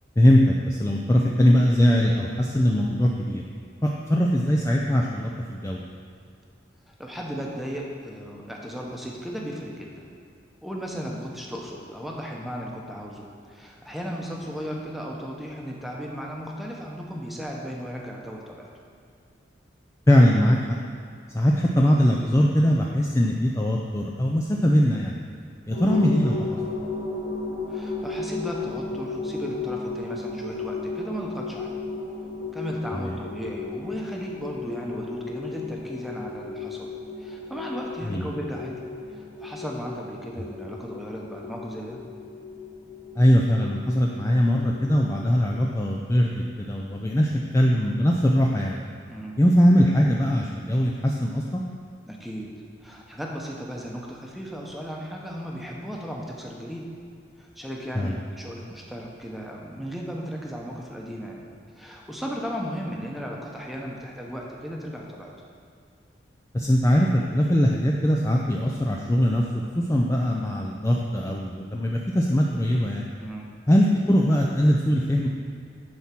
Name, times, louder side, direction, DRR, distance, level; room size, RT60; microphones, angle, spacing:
voice 1, 0.2-3.4 3.8-5.8 20.1-20.8 21.3-25.2 25.7-26.5 32.9-33.1 38.0-38.2 43.2-48.8 49.4-51.6 57.9-58.2 66.5-73.0 73.7-75.3, equal, 15° left, -2 dB, 0.4 m, -21 dB
voice 2, 6.9-10.1 10.6-18.7 27.7-31.8 32.5-36.9 37.2-38.8 39.1-42.0 49.1-49.4 52.1-52.5 52.8-56.9 57.4-61.4 61.8-65.3 73.2-73.5, equal, ahead, -2 dB, 0.9 m, -35 dB
sound 1, 25.7-45.5, left 3 dB, 70° left, 1.9 m, -35 dB
9.6 x 4.3 x 5.9 m, 2.3 s
head